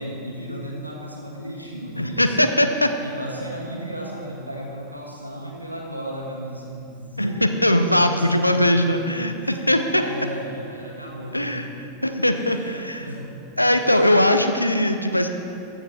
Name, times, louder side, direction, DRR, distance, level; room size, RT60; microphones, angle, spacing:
voice 1, 0.0-7.4 7.7-11.7 12.3-13.3 13.7-14.1, right 1 dB, 90° right, -2 dB, 1.4 m, -34 dB
voice 2, 2.0-2.9 7.2-7.3 7.6-10.0 11.3-11.7 12.0-13.0 13.6-15.3, left 1 dB, 85° left, 7 dB, 0.6 m, -20 dB
14.5 x 6.7 x 4.6 m, 2.7 s
figure-of-eight pair, 90°, 0 cm